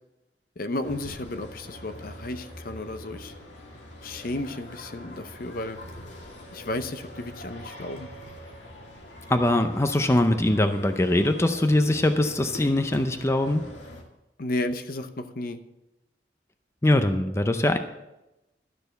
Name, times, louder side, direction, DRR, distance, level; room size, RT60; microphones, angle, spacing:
voice 1, 0.6-3.3 4.0-5.8 6.5-8.1 14.4-15.6, left 2 dB, 55° left, 9 dB, 0.8 m, -33 dB
sound 1, 0.8-14.0, left 1 dB, 90° left, 2.3 m, -43 dB
voice 2, 9.3-13.6 16.8-17.8, left 1 dB, 15° left, 8 dB, 0.6 m, -22 dB
12.5 x 6.8 x 6.7 m, 0.95 s
head